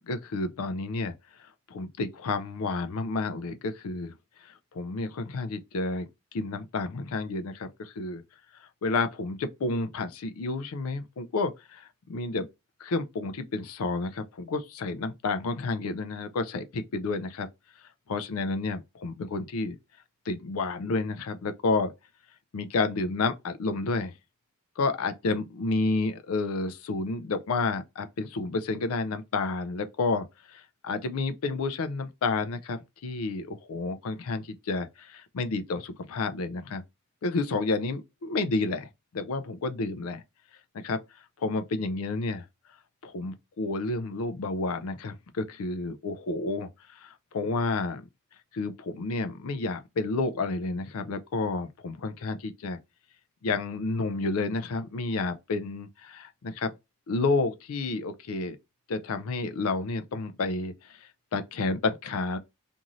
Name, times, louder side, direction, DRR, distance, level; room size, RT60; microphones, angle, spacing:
voice 1, 0.1-1.1 1.7-4.1 4.4-6.1 6.3-8.2 8.8-12.5 12.8-17.5 18.1-19.8 20.3-21.9 22.5-24.1 24.8-36.8 37.2-40.2 40.7-41.0 41.4-42.4 43.0-46.7 47.0-48.0 48.5-52.8 53.4-56.7 57.1-58.6 58.9-60.7 61.3-62.4, left 3 dB, 80° left, 0.4 m, -30 dB
2.6 x 2.5 x 2.9 m
head